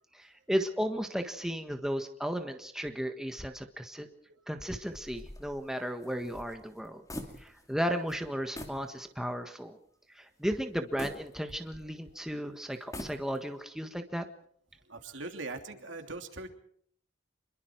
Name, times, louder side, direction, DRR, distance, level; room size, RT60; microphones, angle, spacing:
voice 1, 0.1-4.1 4.5-7.0 7.4-9.8 10.1-14.3, equal, 5° right, 6 dB, 1.5 m, -34 dB
sound 1, 5.0-7.8 8.1-8.2 8.5-8.9 9.3-9.4 11.0-12.0 12.7-13.6, left 1 dB, 20° left, 2.6 m, -44 dB
voice 2, 14.9-16.5, right 3 dB, 70° right, 5 dB, 3.1 m, -40 dB
26.5 x 22.5 x 4.7 m, 0.64 s
head